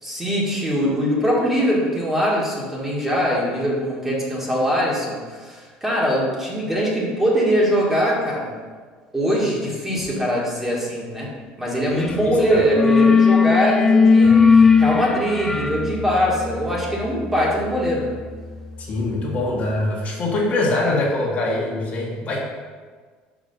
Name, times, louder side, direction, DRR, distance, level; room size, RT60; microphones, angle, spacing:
voice 1, 0.0-8.5 9.1-11.3 11.6-18.2, equal, 10° right, -4 dB, 1.8 m, -22 dB
voice 2, 12.0-12.6 18.8-22.4, left 2 dB, 45° left, -3 dB, 1.5 m, -23 dB
sound 1, 12.0-12.2 12.5-19.1, left 5 dB, 15° left, 0.4 m, -18 dB
5.1 x 5.1 x 5.3 m, 1.5 s
cardioid pair, 115°, 4 cm